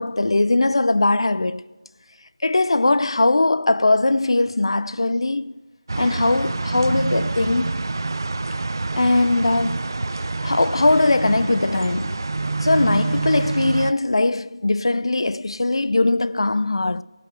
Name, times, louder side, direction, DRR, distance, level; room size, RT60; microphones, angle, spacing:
voice 1, 0.0-1.6 2.4-5.5 6.0-7.7 9.0-10.0 10.4-12.2 12.6-17.0, left 2 dB, 65° left, 0.4 m, -20 dB
sound 1, 5.9-13.9, right 3 dB, 40° right, 0.4 m, -26 dB
17.5 x 6.4 x 8.1 m
figure-of-eight pair, 175°, 3 cm